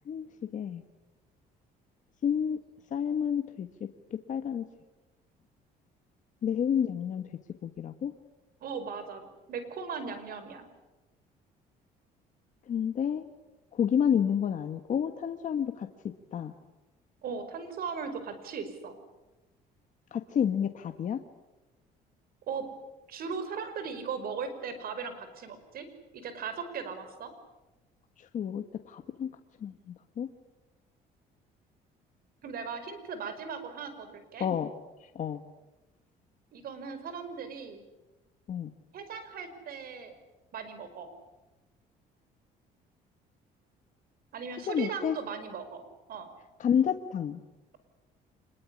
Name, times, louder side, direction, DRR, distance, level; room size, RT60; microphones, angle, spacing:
voice 1, 2.2-2.6 2.9-3.9 4.3-4.6 6.4-7.3 7.6-8.1 12.7-13.3 13.7-15.9 16.3-16.5 20.1-21.2 28.2-29.3 29.6-30.3 34.4-34.7 35.0-35.4 38.5-38.7 44.7-45.2 46.6-47.4, left 8 dB, 50° left, 7 dB, 1.5 m, -29 dB
voice 2, 8.6-10.7 17.2-19.0 22.5-22.7 23.1-25.9 26.1-27.3 32.4-34.5 36.5-37.8 38.9-40.1 40.5-41.1 44.3-46.3, right 5 dB, 60° right, 10 dB, 5.2 m, -38 dB
26.0 x 21.5 x 9.9 m, 1.1 s
cardioid pair, 110°, 17 cm